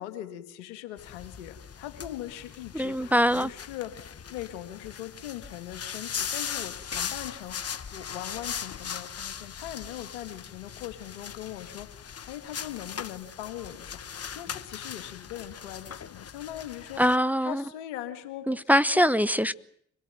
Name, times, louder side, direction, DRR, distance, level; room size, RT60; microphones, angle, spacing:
voice 1, 0.0-4.0 4.3-17.0 17.4-18.5 18.9-19.5, left 13 dB, 85° left, 1.8 m, -40 dB
sound 1, 1.0-17.2, left 7 dB, 45° left, 1.4 m, -39 dB
voice 2, 2.7-3.5 17.0-17.6 18.5-19.5, equal, 5° right, 1.0 m, -23 dB
25.5 x 18.0 x 9.1 m
hypercardioid pair, 40°, 34 cm